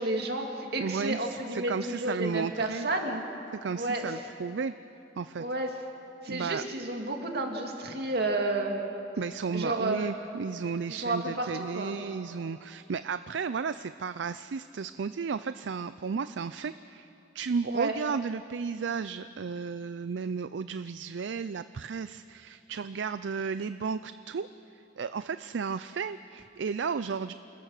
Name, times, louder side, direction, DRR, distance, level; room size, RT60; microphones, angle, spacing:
voice 1, 0.0-3.2 3.7-4.1 5.4-5.7 6.2-8.9 9.5-10.1 10.9-12.0 17.7-18.0, right 2 dB, 60° right, 2 dB, 2.4 m, -31 dB
voice 2, 0.8-2.9 3.5-4.7 5.2-5.4 6.3-6.6 9.2-17.1 17.3-27.3, right 5 dB, 75° right, 13 dB, 0.4 m, -33 dB
28.0 x 21.0 x 6.6 m, 2.8 s
head